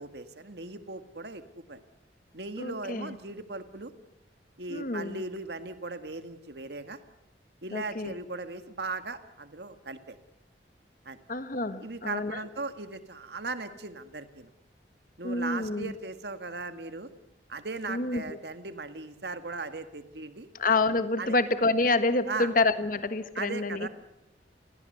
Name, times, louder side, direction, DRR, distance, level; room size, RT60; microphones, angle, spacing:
voice 1, 0.0-1.8 2.3-3.9 4.6-7.0 7.6-10.2 11.0-11.2 11.8-14.5 15.2-17.1 17.5-20.5 21.2-21.4 22.3-22.5 23.4-23.9, right 3 dB, 70° right, 9 dB, 1.8 m, -38 dB
voice 2, 2.6-3.2 4.7-5.2 7.7-8.1 11.3-12.4 15.2-15.9 17.9-18.4 20.6-23.9, left 3 dB, 50° left, 11 dB, 1.4 m, -28 dB
29.0 x 17.0 x 8.0 m, 0.88 s
head